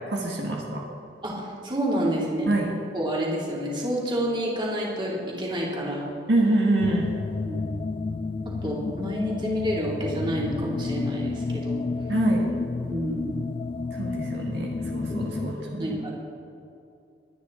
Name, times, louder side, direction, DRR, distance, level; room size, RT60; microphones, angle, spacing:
voice 1, 0.1-0.8 2.4-2.7 6.3-7.1 12.1-12.4 13.9-16.0, right 1 dB, 75° right, -1 dB, 1.8 m, -25 dB
voice 2, 1.2-2.5 2.9-6.1 7.4-7.7 8.6-11.8 12.8-13.3 15.1-15.3 15.8-16.1, equal, 30° right, -4 dB, 2.8 m, -29 dB
sound 1, 6.8-15.5, left 3 dB, 30° left, 0.3 m, -31 dB
21.5 x 9.6 x 3.9 m, 2.6 s
head